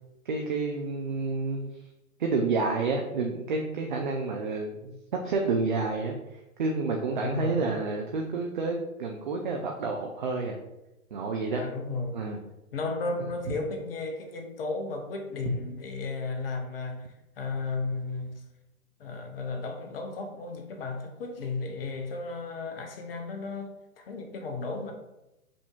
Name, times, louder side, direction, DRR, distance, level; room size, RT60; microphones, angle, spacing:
voice 1, 0.3-1.7 2.2-4.9 5.2-6.1 6.6-10.6 11.1-11.6 12.1-12.4 13.5-13.6, right 3 dB, 35° right, 1 dB, 0.5 m, -29 dB
voice 2, 7.2-7.7 11.5-12.2 12.7-17.1 17.4-18.4 19.0-23.7 24.0-24.9, left 3 dB, 40° left, 4 dB, 0.9 m, -34 dB
5.1 x 2.7 x 3.6 m, 0.92 s
figure-of-eight pair, 125°, 42 cm